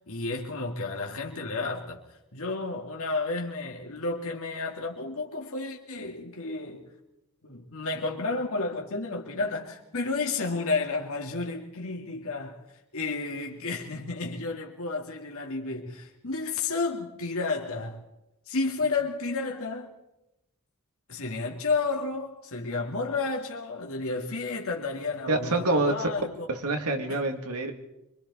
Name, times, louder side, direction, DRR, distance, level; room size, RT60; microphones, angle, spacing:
voice 1, 0.1-2.0 2.3-6.9 7.4-12.6 12.9-18.0 18.5-19.9 21.1-26.5, left 3 dB, 70° left, 2.2 m, -31 dB
voice 2, 25.3-26.1 26.5-27.7, right 2 dB, 90° right, 2.6 m, -26 dB
25.5 x 24.5 x 4.2 m
head